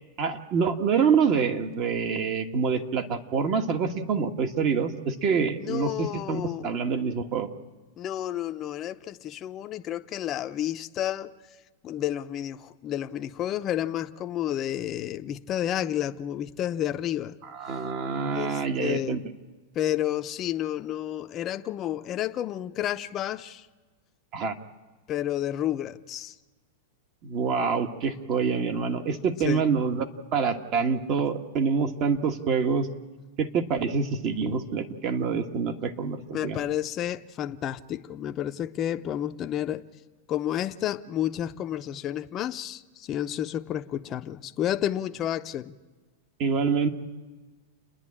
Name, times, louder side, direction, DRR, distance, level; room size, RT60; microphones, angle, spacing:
voice 1, 0.2-7.5 17.4-19.2 24.3-24.6 27.2-30.0 30.3-32.9 33.4-36.6 46.4-46.9, right 5 dB, 40° right, 1.5 m, -26 dB
voice 2, 5.6-6.7 8.0-11.3 11.8-17.4 18.3-19.2 19.7-23.7 25.1-26.3 29.4-29.6 36.3-39.9 40.3-45.7, left 11 dB, 30° left, 0.7 m, -31 dB
29.5 x 10.5 x 8.7 m
supercardioid pair, 135°, 0 cm